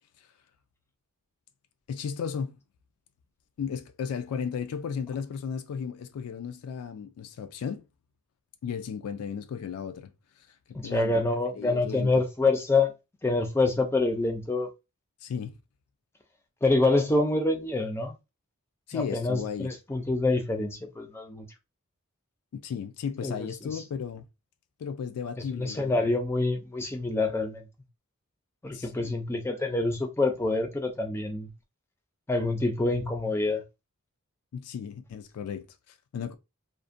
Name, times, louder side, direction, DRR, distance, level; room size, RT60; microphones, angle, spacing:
voice 1, 1.9-2.6 3.6-7.8 8.6-10.1 10.8-11.2 11.6-12.2 15.2-15.6 18.9-19.7 22.5-24.2 24.8-26.0 28.7-29.1 34.5-36.3, left 7 dB, 85° left, 0.3 m, -35 dB
voice 2, 10.7-12.9 13.2-14.7 16.6-18.1 18.9-21.5 23.2-23.8 25.6-27.6 28.6-31.5 32.3-33.6, left 2 dB, 10° left, 0.4 m, -26 dB
2.5 x 2.1 x 2.5 m
head